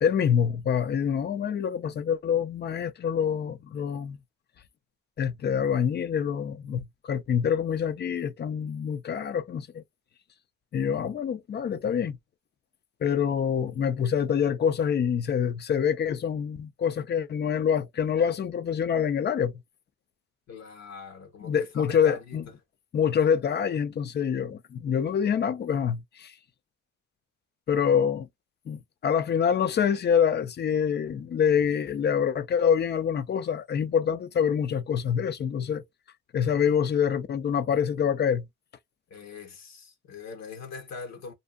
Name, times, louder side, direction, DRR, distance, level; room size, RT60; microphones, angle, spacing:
voice 1, 0.0-4.2 5.2-9.8 10.7-12.2 13.0-19.5 21.4-22.4 22.9-26.3 27.7-28.3 28.7-35.8 36.3-38.4, left 8 dB, 35° left, 0.4 m, -26 dB
voice 2, 20.5-22.4 39.1-41.3, left 5 dB, 60° left, 1.0 m, -41 dB
2.6 x 2.3 x 2.2 m
cardioid pair, 90°, 30 cm